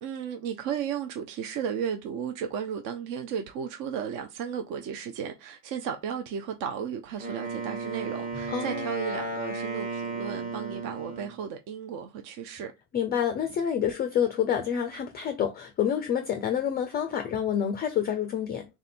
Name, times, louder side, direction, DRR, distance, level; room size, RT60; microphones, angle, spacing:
voice 1, 0.0-12.7, right 7 dB, 45° right, 0.6 m, -34 dB
Wind instrument woodwind instrument, 7.2-11.4, right 3 dB, 20° right, 1.1 m, -34 dB
voice 2, 8.5-8.9 12.9-18.7, left 8 dB, 20° left, 0.4 m, -28 dB
3.5 x 2.5 x 4.2 m
hypercardioid pair, 105°, 46 cm